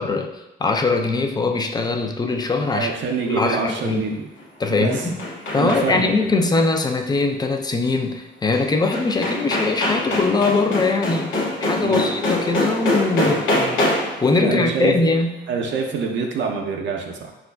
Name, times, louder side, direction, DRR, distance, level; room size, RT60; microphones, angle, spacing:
voice 1, 0.0-2.9 3.3-4.2 4.6-5.2 5.5-13.9 14.2-15.4, left 3 dB, 20° left, 5 dB, 0.4 m, -21 dB
voice 2, 2.7-4.3 4.7-5.0 5.5-6.1 11.8-12.0 13.2-13.7 14.4-15.0 15.5-17.3, right 5 dB, 70° right, 2 dB, 0.5 m, -26 dB
sound 1, 4.4-6.2 8.5-8.6 8.9-14.3, left 1 dB, 80° left, 0.7 m, -24 dB
5.0 x 2.3 x 2.2 m, 0.96 s
cardioid pair, 90°, 20 cm